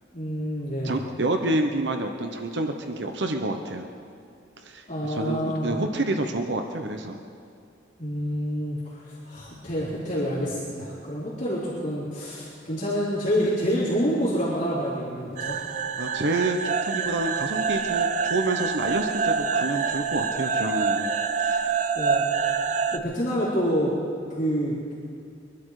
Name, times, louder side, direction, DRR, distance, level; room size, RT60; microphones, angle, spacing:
voice 1, 0.1-1.0 4.9-5.7 8.0-15.6 21.9-22.2 22.9-23.9 24.3-24.8, equal, 40° left, -12 dB, 3.8 m, -27 dB
voice 2, 0.8-3.9 4.6-7.2 16.0-21.1 21.4-21.8, right 2 dB, 65° right, 5 dB, 1.0 m, -28 dB
sound 1, 15.4-23.0, right 5 dB, 45° right, 0.6 m, -26 dB
23.5 x 12.0 x 4.9 m, 2.4 s
head